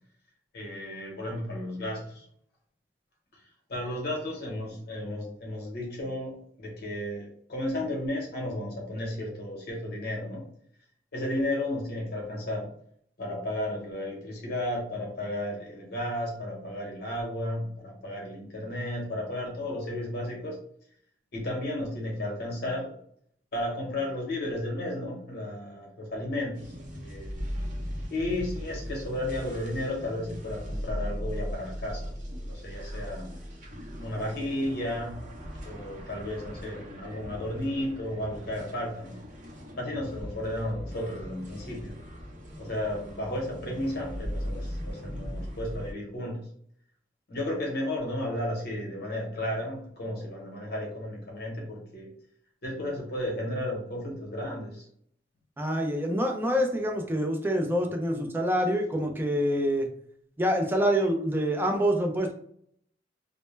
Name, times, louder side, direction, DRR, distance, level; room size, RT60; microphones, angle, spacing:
voice 1, 0.5-2.3 3.7-10.4 11.1-12.7 13.2-20.6 21.3-23.0 23.5-27.4 28.1-32.1 32.4-33.3 34.0-35.2 35.6-39.2 39.8-42.0 42.6-46.4 47.3-52.1 52.6-54.9, left 1 dB, 65° left, -1 dB, 0.9 m, -33 dB
sound 1, 26.5-45.9, equal, 45° right, 0.7 m, -38 dB
voice 2, 55.6-59.9 60.4-62.3, equal, 10° right, 2 dB, 0.4 m, -26 dB
2.1 x 2.0 x 3.1 m, 0.65 s
head